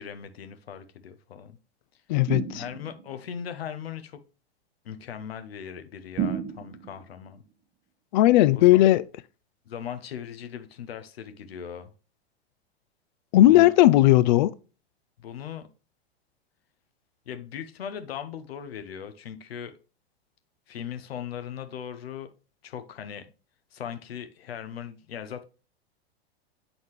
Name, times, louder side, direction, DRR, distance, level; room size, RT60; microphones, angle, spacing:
voice 1, 0.0-1.6 2.5-4.2 4.8-7.4 8.5-8.8 9.7-11.9 13.4-13.7 15.2-15.7 17.3-19.7 20.7-22.3 22.6-23.3 23.7-25.4, left 8 dB, 70° left, 0.9 m, -38 dB
voice 2, 2.1-2.6 8.1-9.0 13.3-14.5, left 15 dB, 45° left, 0.4 m, -17 dB
sound 1, 2.3-3.1 6.2-7.1, right 8 dB, 25° right, 0.9 m, -32 dB
7.8 x 4.0 x 3.1 m
figure-of-eight pair, 100°, 32 cm